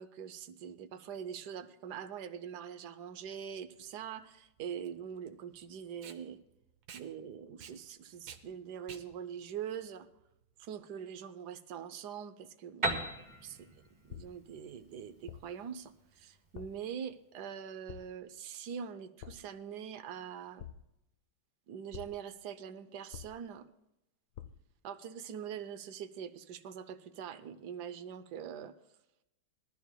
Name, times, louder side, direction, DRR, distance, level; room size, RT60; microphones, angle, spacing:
voice 1, 0.0-6.4 6.9-10.1 10.6-13.0 13.4-13.6 14.1-20.7 21.7-23.7 24.8-28.7, right 8 dB, 65° right, 12 dB, 1.1 m, -43 dB
Packing tape duct tape, 3.3-10.7, right 7 dB, 85° right, 1.7 m, -55 dB
Piano, 12.8-16.5, right 2 dB, 20° right, 1.0 m, -38 dB
sound 1, 14.1-14.6 15.3-15.7 16.5-16.9 17.9-18.3 19.2-19.6 20.6-21.1 21.9-22.4 23.1-23.7 24.3-24.8, left 10 dB, 80° left, 1.5 m, -49 dB
20.5 x 13.5 x 2.2 m, 0.88 s
omnidirectional pair, 2.1 m